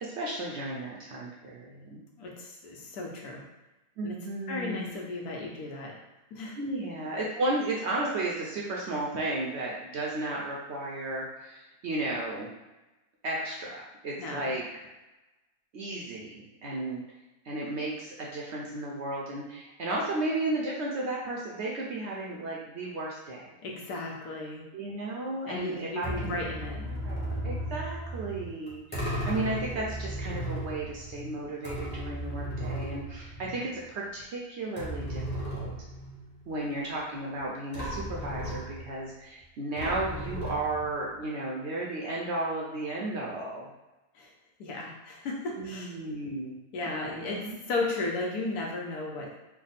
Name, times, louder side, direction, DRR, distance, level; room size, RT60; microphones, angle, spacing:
voice 1, 0.0-2.0 4.0-4.9 6.6-12.5 13.2-14.7 15.7-17.0 17.4-23.5 24.7-26.4 26.7-35.2 35.5-35.7 36.5-43.7 45.5-46.5 46.8-47.6, right 2 dB, 65° right, -3 dB, 0.7 m, -34 dB
voice 2, 2.2-3.4 4.0-4.2 4.5-6.0 6.3-6.6 14.2-14.4 23.6-24.6 25.5-26.8 44.1-44.3 44.6-45.9 46.7-49.3, left 2 dB, 85° left, -1 dB, 1.3 m, -35 dB
sound 1, 26.0-33.9 34.2-34.3 34.8-36.4 37.4-37.5 37.7-39.1 39.8-41.1, right 1 dB, 10° left, 0.7 m, -36 dB
3.4 x 2.1 x 4.0 m, 1.0 s
omnidirectional pair, 1.6 m